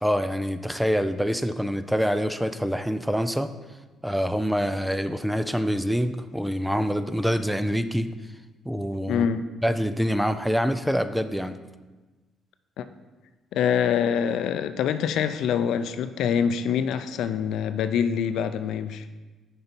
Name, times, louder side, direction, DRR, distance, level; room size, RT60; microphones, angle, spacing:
voice 1, 0.0-3.5 4.0-8.1 8.7-9.3 9.6-11.6, equal, ahead, 10 dB, 0.3 m, -25 dB
voice 2, 9.1-9.5 12.8-12.9 13.5-19.1, left 8 dB, 80° left, 11 dB, 0.4 m, -25 dB
6.7 x 5.4 x 4.4 m, 1.2 s
cardioid pair, 120°, 0 cm